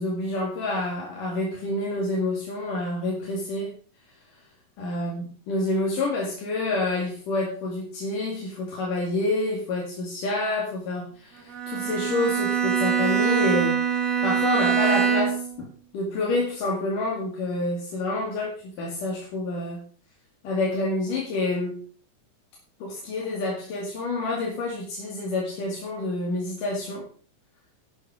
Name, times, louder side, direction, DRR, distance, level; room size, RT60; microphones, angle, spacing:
voice 1, 0.0-3.7 4.8-13.8 14.2-15.7 15.9-18.5 18.8-19.8 20.4-21.8 22.8-27.1, left 2 dB, 85° left, -3 dB, 3.9 m, -28 dB
Bowed string instrument, 11.5-15.6, right 8 dB, 40° right, 1.3 m, -23 dB
11.5 x 8.3 x 4.9 m, 0.43 s
omnidirectional pair, 3.6 m